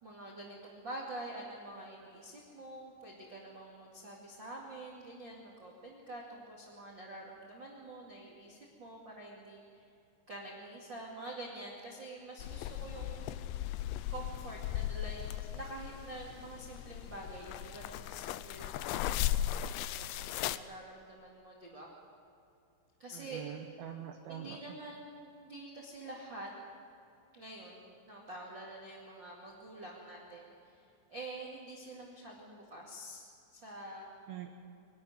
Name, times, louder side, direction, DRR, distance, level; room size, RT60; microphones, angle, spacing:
voice 1, 0.0-9.9 10.3-13.4 14.1-21.9 23.0-23.4 24.3-26.5 27.3-34.1, right 2 dB, 35° right, -3 dB, 1.9 m, -47 dB
sound 1, 12.4-20.6, left 13 dB, 90° left, 2.4 m, -37 dB
voice 2, 23.1-24.6 34.3-34.5, right 10 dB, 75° right, 4 dB, 2.2 m, -44 dB
24.5 x 12.0 x 9.5 m, 2.6 s
omnidirectional pair, 5.7 m